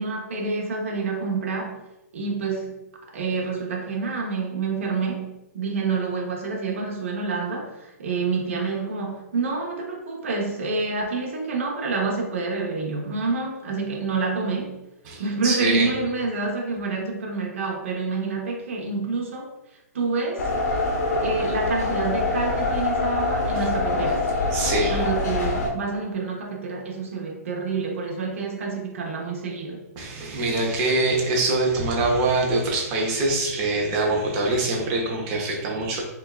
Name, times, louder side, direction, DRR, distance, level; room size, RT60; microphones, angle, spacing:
voice 1, 0.0-1.8 2.1-2.8 3.1-7.7 8.0-14.8 15.2-19.5 19.9-20.4 21.1-24.3 24.9-29.8, right 4 dB, 50° right, 0 dB, 0.9 m, -28 dB
voice 2, 15.1-16.0 23.5-23.6 24.5-25.1 30.0-36.0, right 2 dB, 20° right, -1 dB, 0.7 m, -24 dB
sound 1, 20.4-25.7, left 2 dB, 85° left, 0.9 m, -24 dB
5.2 x 2.3 x 2.3 m, 0.96 s
hypercardioid pair, 175°, 9 cm